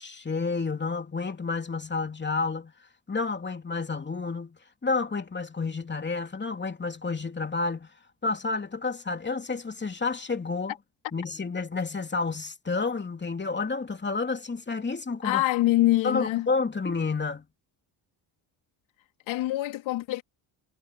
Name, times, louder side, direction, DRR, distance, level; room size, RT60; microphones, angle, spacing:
voice 1, 0.0-2.7 3.1-7.9 8.2-10.7 11.1-15.4 16.0-17.5, left 4 dB, 25° left, 2.9 m, -30 dB
voice 2, 15.2-16.5 19.3-20.2, left 16 dB, 80° left, 3.0 m, -24 dB
supercardioid pair, 80°, 46 cm